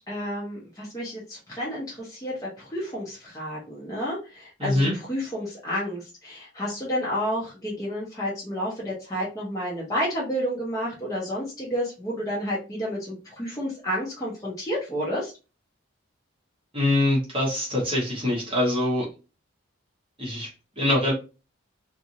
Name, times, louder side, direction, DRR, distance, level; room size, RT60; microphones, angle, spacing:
voice 1, 0.0-15.3, equal, 15° left, -5 dB, 0.8 m, -30 dB
voice 2, 4.6-4.9 16.7-19.1 20.2-20.5 20.8-21.1, left 1 dB, 25° right, -3 dB, 1.0 m, -23 dB
2.6 x 2.5 x 2.8 m, 0.30 s
head